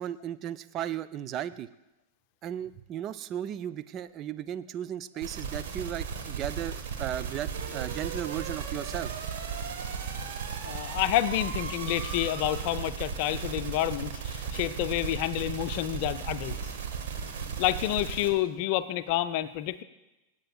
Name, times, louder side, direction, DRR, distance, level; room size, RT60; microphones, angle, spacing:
voice 1, 0.0-1.7 2.4-9.2, right 10 dB, 35° right, 12 dB, 0.4 m, -35 dB
sound 1, 5.2-18.3, right 6 dB, 55° right, 1.5 m, -35 dB
voice 2, 10.6-16.6 17.6-19.8, left 13 dB, 45° left, 12 dB, 0.5 m, -29 dB
25.0 x 8.6 x 2.4 m, 0.97 s
figure-of-eight pair, 90°, 0 cm